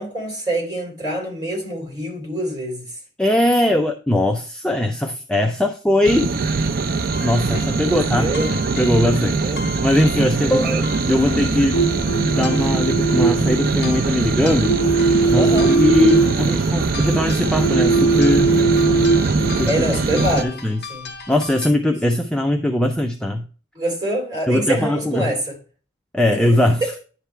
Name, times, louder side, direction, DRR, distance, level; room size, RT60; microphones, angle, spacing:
voice 1, 0.0-3.0 7.9-8.5 9.2-9.6 10.4-10.9 15.3-15.7 19.7-20.6 20.9-21.1 23.7-25.6 26.3-26.4 26.8-26.9, right 1 dB, 20° right, 3.4 m, -25 dB
voice 2, 3.2-6.3 7.2-8.3 8.8-9.5 9.8-11.8 12.3-14.7 15.3-18.5 19.6-19.7 20.1-20.8 21.3-23.4 24.5-25.3 26.1-26.9, left 1 dB, 5° left, 0.5 m, -20 dB
sound 1, 6.0-20.4, right 3 dB, 45° right, 0.6 m, -22 dB
sound 2, 7.1-21.7, left 5 dB, 55° left, 1.0 m, -38 dB
sound 3, 11.0-20.3, right 3 dB, 80° left, 1.7 m, -21 dB
10.0 x 3.4 x 4.3 m
head